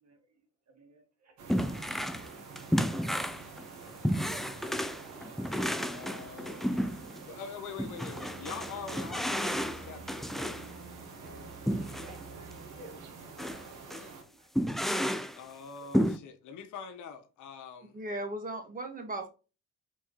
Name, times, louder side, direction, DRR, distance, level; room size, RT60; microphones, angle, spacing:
voice 1, 0.7-1.9 2.3-2.4 11.8-13.1 14.2-14.9 15.8-15.9, right 1 dB, 60° right, 1.9 m, -56 dB
sound 1, 1.4-14.2, right 5 dB, 85° right, 1.3 m, -48 dB
sound 2, 1.5-2.3 2.6-7.3 7.8-10.7 11.7-12.2 12.5-12.6 13.4-13.6 13.9-14.1 14.6-15.4 15.9-16.2, equal, ahead, 0.4 m, -32 dB
voice 2, 5.5-6.8 7.2-10.6 15.3-18.0, left 6 dB, 80° left, 1.1 m, -44 dB
sound 3, 8.1-13.6, right 3 dB, 45° right, 1.1 m, -49 dB
voice 3, 17.9-19.3, right 1 dB, 30° right, 1.6 m, -37 dB
4.4 x 3.7 x 3.0 m
cardioid pair, 90°, 30 cm